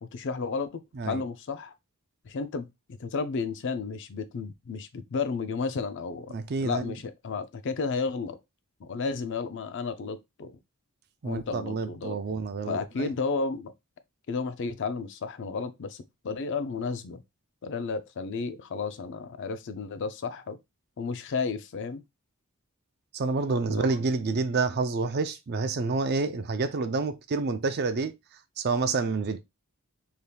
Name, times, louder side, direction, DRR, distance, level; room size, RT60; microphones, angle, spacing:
voice 1, 0.0-1.7 2.2-6.3 6.6-8.4 8.8-10.6 11.2-12.2 12.7-13.7 14.3-17.2 17.6-20.6 21.0-22.0 23.7-23.9, left 4 dB, 55° left, 0.4 m, -32 dB
voice 2, 6.3-7.0 11.2-13.1 23.1-28.1 28.6-29.4, right 4 dB, 45° right, 0.4 m, -28 dB
3.3 x 2.8 x 2.2 m
head